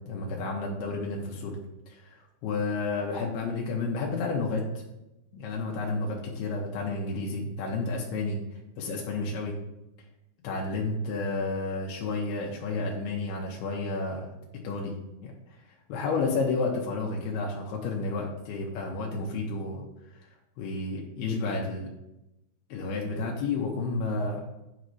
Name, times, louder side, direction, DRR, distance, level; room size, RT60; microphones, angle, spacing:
voice 1, 0.1-1.6 1.9-4.6 5.3-8.4 8.8-9.6 10.4-14.3 14.6-14.9 15.2-15.6 15.9-19.8 20.2-20.3 20.6-21.9 22.7-24.4, left 3 dB, 90° left, -1 dB, 2.2 m, -31 dB
10.5 x 3.9 x 4.7 m, 0.94 s
omnidirectional pair, 5.7 m